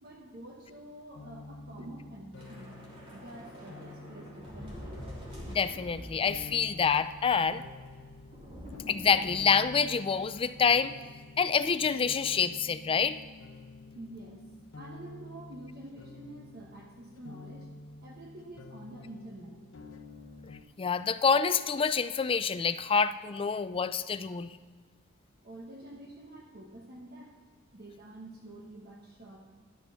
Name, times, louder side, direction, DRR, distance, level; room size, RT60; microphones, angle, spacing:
voice 1, 0.0-2.7 3.1-5.1 13.9-14.5 14.8-17.7 18.0-19.6 25.4-27.3 27.7-29.4, right 1 dB, 50° right, 0 dB, 1.1 m, -47 dB
sound 1, 1.1-20.6, left 3 dB, 80° left, 0.7 m, -49 dB
Thunder / Rain, 2.3-10.9 11.2-11.4 11.7-12.0, equal, 30° right, 3.2 m, -47 dB
voice 2, 5.5-7.6 8.9-10.9 11.4-13.2 20.8-24.5, left 6 dB, 25° left, 13 dB, 0.4 m, -27 dB
11.5 x 6.7 x 5.6 m, 1.5 s
head